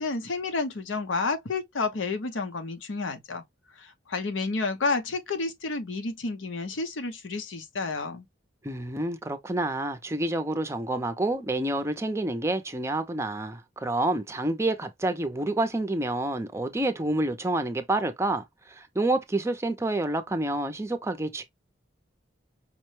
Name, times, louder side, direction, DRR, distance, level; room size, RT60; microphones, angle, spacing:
voice 1, 0.0-3.4 3.8-8.3, left 3 dB, 90° left, 0.7 m, -30 dB
voice 2, 8.6-21.4, right 2 dB, 15° right, 0.5 m, -28 dB
5.2 x 2.1 x 3.1 m
head